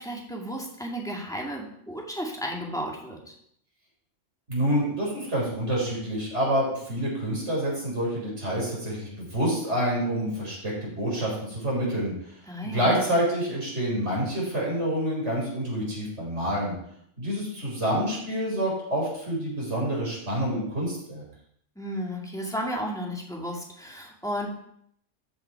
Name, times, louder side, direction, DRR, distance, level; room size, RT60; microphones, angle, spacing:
voice 1, 0.0-3.3 12.5-13.0 21.8-24.5, equal, 5° left, -1 dB, 2.0 m, -33 dB
voice 2, 4.5-12.1 12.6-16.7 17.2-21.2, equal, 70° right, -4 dB, 4.7 m, -27 dB
13.5 x 5.9 x 4.6 m, 0.70 s
omnidirectional pair, 1.2 m